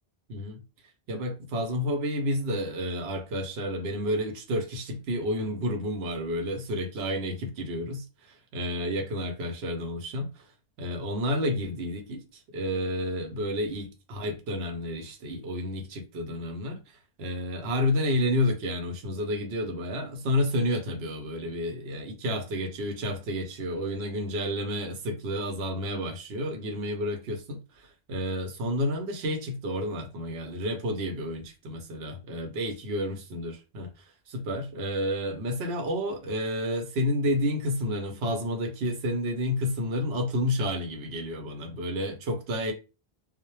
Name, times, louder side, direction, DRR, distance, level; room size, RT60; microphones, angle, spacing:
voice 1, 0.3-0.6 1.1-8.0 8.5-10.4 10.8-16.8 17.2-27.6 28.1-33.9 34.3-42.7, left 1 dB, 90° right, 0.9 m, -30 dB
2.1 x 2.0 x 2.9 m
omnidirectional pair, 1.0 m